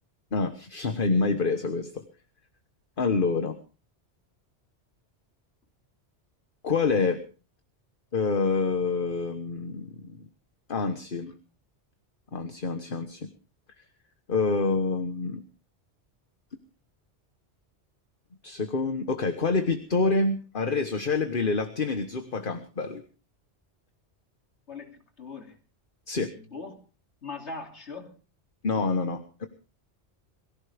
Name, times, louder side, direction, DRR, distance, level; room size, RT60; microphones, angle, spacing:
voice 1, 0.3-2.0 3.0-3.6 6.6-7.2 8.1-10.2 10.7-11.3 12.3-13.3 14.3-15.4 18.4-23.0 26.1-26.3 28.6-29.5, left 4 dB, 50° left, 7 dB, 1.5 m, -27 dB
voice 2, 24.7-25.6 26.3-26.8 27.2-28.1, left 4 dB, 75° left, 3 dB, 3.2 m, -40 dB
23.0 x 16.0 x 3.5 m, 0.37 s
omnidirectional pair, 1.2 m